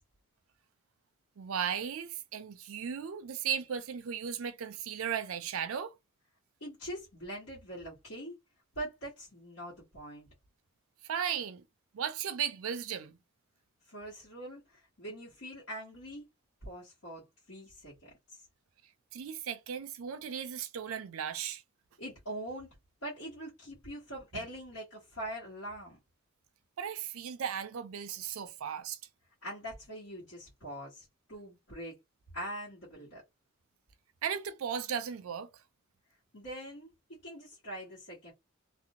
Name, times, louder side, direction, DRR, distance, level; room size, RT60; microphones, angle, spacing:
voice 1, 1.4-5.9 11.0-11.6 11.9-13.2 19.1-21.6 26.8-29.0 34.2-35.5, right 8 dB, 75° right, 0.4 m, -36 dB
voice 2, 6.6-8.3 8.7-10.3 13.9-14.6 15.0-16.2 16.6-17.2 17.5-18.5 22.0-22.7 23.0-26.0 29.4-31.9 32.3-33.2 36.3-38.3, right 1 dB, 65° left, 1.1 m, -43 dB
2.5 x 2.1 x 2.8 m
head